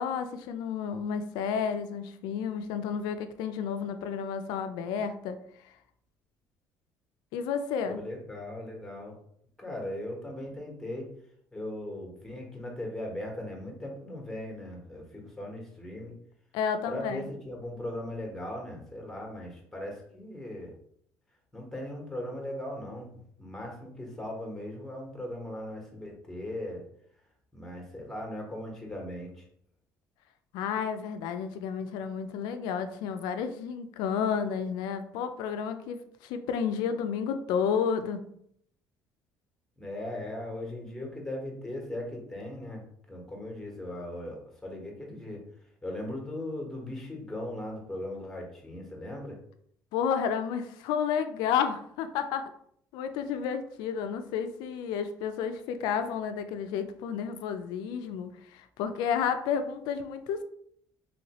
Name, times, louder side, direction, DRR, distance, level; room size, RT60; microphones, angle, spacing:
voice 1, 0.0-5.4 5.6-5.7 7.3-8.0 16.5-17.3 30.5-38.3 49.9-52.4 52.9-60.4, left 7 dB, 80° left, 9 dB, 0.4 m, -31 dB
voice 2, 7.8-9.1 9.6-11.1 11.5-16.1 16.9-20.7 21.5-23.1 23.4-26.8 27.5-29.4 39.8-45.4 45.8-49.4, left 1 dB, 5° left, 0 dB, 1.2 m, -38 dB
3.1 x 2.8 x 2.9 m, 0.67 s
supercardioid pair, 95°, 7 cm